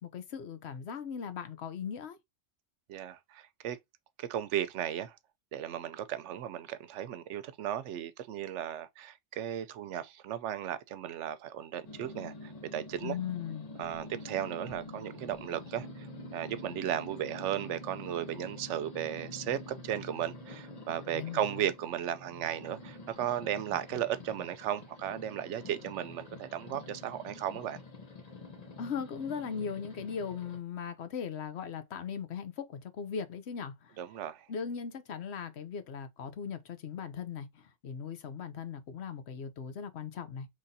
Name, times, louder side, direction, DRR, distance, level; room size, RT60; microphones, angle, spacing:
voice 1, 0.0-2.2 13.0-13.7 21.1-21.7 28.8-34.0 34.5-40.5, left 7 dB, 70° left, 1.0 m, -39 dB
voice 2, 2.9-3.8 4.2-5.2 5.5-13.2 13.8-16.1 16.3-27.8 34.0-34.5, right 10 dB, 85° right, 0.9 m, -35 dB
sound 1, 11.8-30.6, left 2 dB, 35° left, 0.9 m, -47 dB
5.6 x 3.2 x 2.7 m
omnidirectional pair, 1.2 m